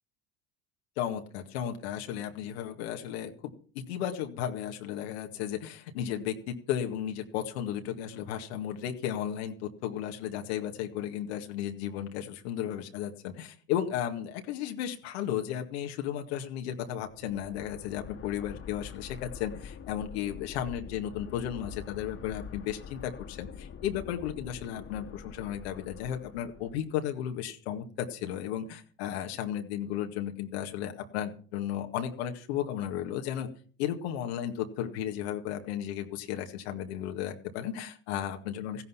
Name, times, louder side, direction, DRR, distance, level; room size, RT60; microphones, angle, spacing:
voice 1, 1.0-3.3 3.7-33.5 33.8-38.8, left 10 dB, 80° left, 4 dB, 2.0 m, -34 dB
sound 1, 17.1-26.9, left 7 dB, 45° left, 2.1 m, -45 dB
15.5 x 11.0 x 5.8 m, 0.43 s
hypercardioid pair, 80°, 31 cm